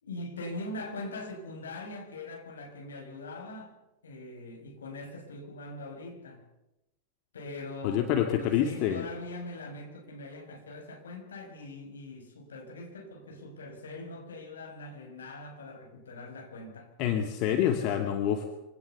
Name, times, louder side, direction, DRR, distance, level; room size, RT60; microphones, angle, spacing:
voice 1, 0.0-3.7 4.0-6.4 7.3-16.9, left 2 dB, 70° left, 3 dB, 5.7 m, -42 dB
voice 2, 7.8-9.1 17.0-18.5, left 10 dB, 40° left, 4 dB, 2.2 m, -27 dB
25.0 x 17.5 x 7.0 m, 0.94 s
figure-of-eight pair, 90°, 0 cm